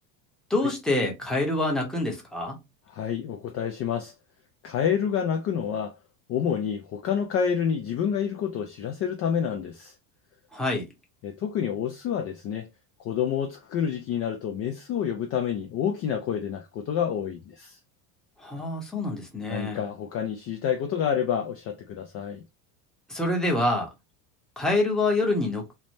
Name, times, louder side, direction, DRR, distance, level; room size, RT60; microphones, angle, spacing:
voice 1, 0.5-2.6 10.5-10.9 18.4-19.8 23.1-23.9 24.6-25.6, left 2 dB, ahead, 0.8 m, -26 dB
voice 2, 2.9-4.1 4.6-5.9 6.3-9.9 11.2-12.7 13.0-17.8 19.5-22.4, left 8 dB, 35° left, 0.4 m, -28 dB
3.2 x 2.1 x 2.6 m
supercardioid pair, 130°, 45 cm